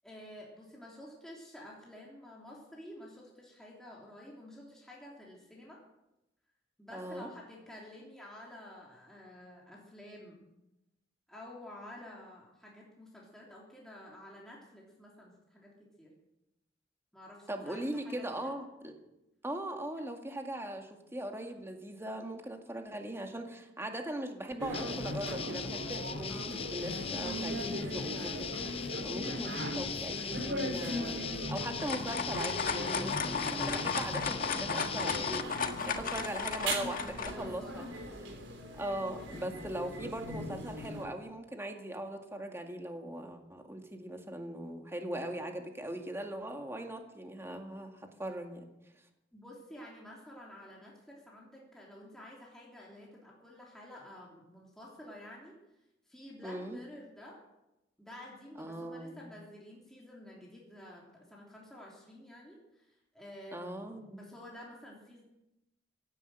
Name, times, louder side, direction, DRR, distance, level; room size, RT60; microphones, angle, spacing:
voice 1, 0.0-5.8 6.8-10.4 11.3-16.1 17.1-18.5 26.3-26.5 37.2-38.5 49.3-55.6 56.1-57.4 58.0-65.2, left 1 dB, 5° left, -4 dB, 3.2 m, -51 dB
voice 2, 6.9-7.3 17.5-18.9 19.4-31.2 31.5-35.5 35.8-37.8 38.8-48.7 56.4-56.8 58.6-59.2 63.5-64.2, right 1 dB, 15° right, 4 dB, 2.0 m, -40 dB
sound 1, 24.6-41.0, equal, 75° right, 3.6 m, -40 dB
sound 2, 24.7-35.4, left 6 dB, 30° left, 0.6 m, -39 dB
sound 3, 31.5-37.3, left 5 dB, 50° left, 1.5 m, -35 dB
17.0 x 10.5 x 8.0 m, 0.91 s
head